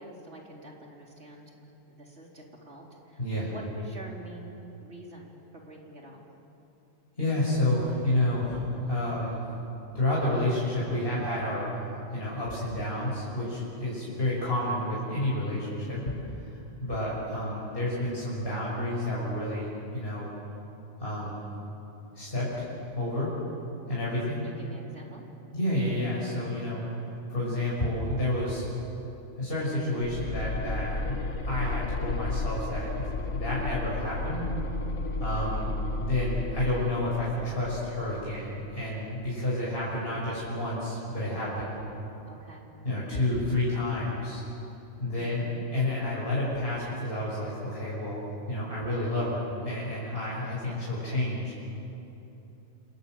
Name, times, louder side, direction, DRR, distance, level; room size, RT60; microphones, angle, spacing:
voice 1, 0.0-1.5 1.9-6.2 24.4-25.3 36.6-37.2 42.2-42.7 45.1-45.6 50.6-50.8, right 1 dB, 70° right, -2 dB, 4.5 m, -47 dB
voice 2, 3.2-3.5 7.2-9.4 9.9-11.8 12.1-16.1 16.5-19.7 19.9-20.3 21.0-21.5 22.1-22.7 22.9-23.3 23.9-24.4 25.5-26.8 27.3-28.7 29.4-31.2 31.4-33.0 33.3-34.5 35.2-35.7 36.0-41.8 42.8-44.4 45.0-48.2 48.5-51.5, left 1 dB, 55° left, -6 dB, 6.4 m, -30 dB
sound 1, 30.0-38.9, left 2 dB, 85° left, 2.0 m, -33 dB
28.0 x 27.5 x 7.8 m, 2.9 s
omnidirectional pair, 1.2 m